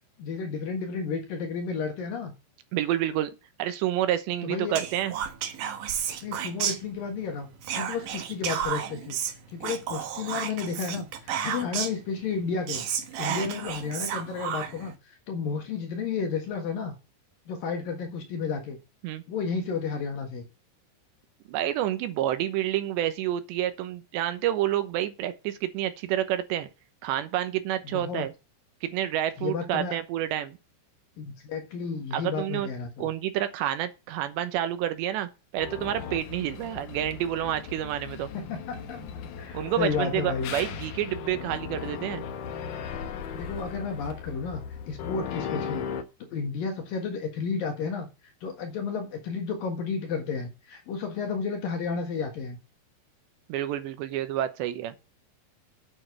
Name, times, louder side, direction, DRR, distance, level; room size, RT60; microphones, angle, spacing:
voice 1, 0.2-2.3 4.4-4.8 6.2-7.5 7.7-9.2 9.5-12.9 13.2-17.0 17.5-18.8 19.3-20.5 27.8-28.3 29.4-30.0 31.2-33.1 38.3-39.0 39.4-40.5 43.3-45.9 46.3-48.1 48.4-52.6, left 5 dB, 60° left, 2.8 m, -32 dB
voice 2, 2.7-3.3 3.6-5.1 13.3-13.5 19.0-19.2 21.5-26.7 27.0-28.3 28.8-30.6 32.1-32.7 33.0-38.3 39.5-42.2 53.5-54.9, right 12 dB, 80° right, 3.0 m, -29 dB
Whispering, 4.7-7.3 7.6-12.1 12.4-12.5 12.7-14.9, right 8 dB, 60° right, 2.4 m, -32 dB
sound 1, 35.6-46.0, left 7 dB, 80° left, 1.8 m, -37 dB
8.9 x 7.7 x 6.4 m
omnidirectional pair, 5.4 m